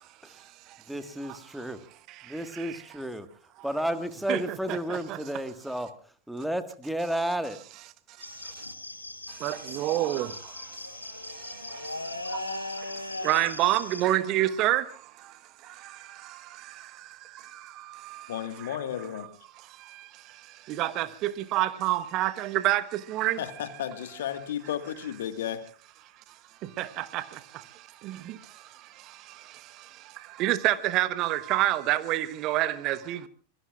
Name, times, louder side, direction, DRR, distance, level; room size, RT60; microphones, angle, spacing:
voice 1, 0.9-1.8 2.2-3.3 3.6-5.9 6.3-7.6, right 1 dB, ahead, 1.7 m, -32 dB
sound 1, 8.2-14.1, left 2 dB, 85° left, 1.7 m, -38 dB
voice 2, 9.4-10.3 13.2-14.8 20.8-22.8 23.1-23.4 26.8-27.2 30.4-33.3, right 14 dB, 40° right, 1.1 m, -26 dB
voice 3, 18.3-19.3 23.4-25.6, left 10 dB, 60° left, 1.7 m, -33 dB
26.5 x 21.5 x 2.5 m
figure-of-eight pair, 90°, 0 cm